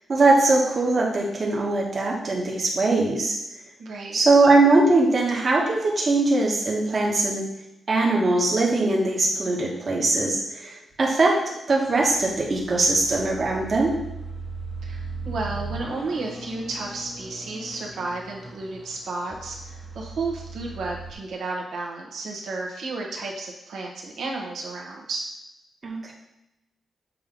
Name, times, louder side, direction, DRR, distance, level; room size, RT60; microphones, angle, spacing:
voice 1, 0.1-3.4 4.1-7.4 7.9-11.4 11.7-14.0 25.8-26.1, right 2 dB, 35° right, -2 dB, 1.3 m, -21 dB
voice 2, 3.8-4.2 14.8-25.3, right 3 dB, 80° right, -1 dB, 1.3 m, -32 dB
sound 1, 11.7-21.1, right 3 dB, 5° left, 0.8 m, -38 dB
7.5 x 3.1 x 5.2 m, 0.90 s
wide cardioid pair, 160°, 0 cm